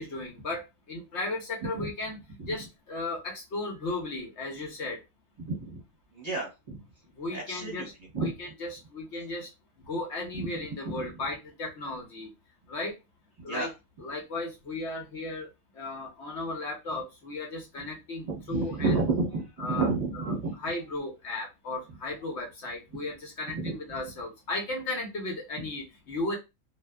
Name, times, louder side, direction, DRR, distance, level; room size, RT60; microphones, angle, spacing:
voice 1, 0.0-2.2 2.5-5.0 7.2-9.5 9.9-12.3 12.7-13.0 13.4-13.7 14.0-15.5 15.7-19.0 19.6-26.4, left 2 dB, 65° left, 0 dB, 1.0 m, -35 dB
voice 2, 5.4-5.8 6.1-6.8 7.3-7.9 8.1-8.3 10.4-10.5 10.8-10.9 13.4-13.7 18.3-20.5 23.5-23.7, right 3 dB, 35° right, -3 dB, 0.9 m, -30 dB
2.6 x 2.3 x 2.2 m, 0.24 s
omnidirectional pair, 1.4 m